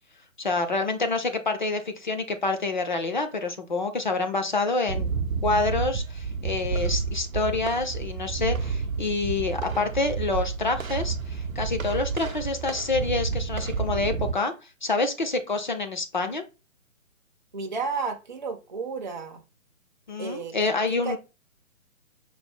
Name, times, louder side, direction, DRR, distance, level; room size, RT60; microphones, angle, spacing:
voice 1, 0.4-5.1 5.4-14.5 14.8-16.4 20.1-21.2, left 3 dB, 35° left, 0.5 m, -27 dB
sound 1, 4.9-14.3, right 5 dB, 80° right, 0.6 m, -30 dB
voice 2, 17.5-19.4 20.2-21.2, right 4 dB, 35° right, 0.4 m, -33 dB
5.1 x 2.1 x 3.5 m
figure-of-eight pair, 140°, 40 cm